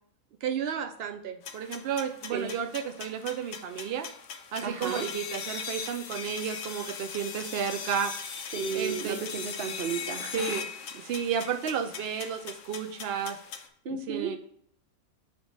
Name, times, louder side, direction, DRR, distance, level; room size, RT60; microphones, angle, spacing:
voice 1, 0.4-4.1 4.5-8.1 8.7-9.2 10.3-10.6 10.9-13.4 14.1-14.4, right 7 dB, 75° right, 6 dB, 0.5 m, -32 dB
sound 1, 1.4-13.7, left 6 dB, 65° left, 1.1 m, -39 dB
voice 2, 4.6-5.1 8.5-10.3 13.8-14.4, right 6 dB, 45° right, 6 dB, 0.9 m, -33 dB
8.5 x 3.0 x 4.4 m, 0.67 s
omnidirectional pair, 1.6 m